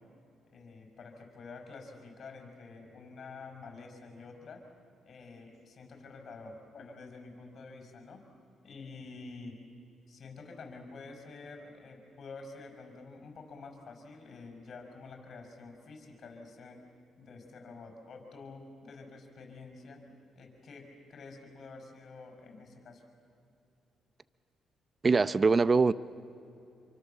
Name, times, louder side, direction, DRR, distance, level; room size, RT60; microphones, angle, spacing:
voice 1, 0.5-4.7 5.0-8.2 8.6-9.6 10.1-16.8 17.2-20.0 20.4-23.0, left 3 dB, 55° left, 6.0 m, -48 dB
voice 2, 25.0-25.9, right 4 dB, 30° right, 0.6 m, -23 dB
28.0 x 24.5 x 7.2 m
cardioid pair, 90°, 0 cm